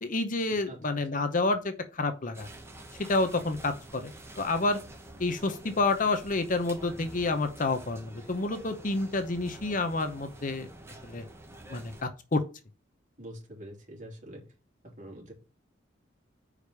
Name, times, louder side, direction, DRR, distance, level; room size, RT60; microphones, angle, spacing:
voice 1, 0.0-2.5 3.0-4.8 5.2-10.7 11.0-11.2 11.7-12.4, left 3 dB, 45° left, 0.8 m, -29 dB
sound 1, 2.3-12.0, right 1 dB, 15° right, 1.4 m, -48 dB
voice 2, 13.2-14.4 15.0-15.3, right 1 dB, 45° right, 3.1 m, -44 dB
5.1 x 5.0 x 6.4 m
head